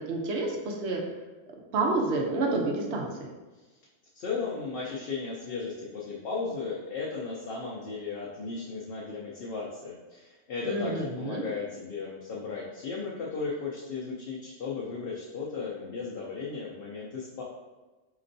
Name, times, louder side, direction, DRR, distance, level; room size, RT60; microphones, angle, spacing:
voice 1, 0.1-1.0 1.7-3.3 10.7-11.4, right 3 dB, 80° right, 0 dB, 1.0 m, -29 dB
voice 2, 4.1-17.4, left 4 dB, 60° left, -4 dB, 0.8 m, -35 dB
4.3 x 2.9 x 2.6 m, 1.2 s
omnidirectional pair, 1.1 m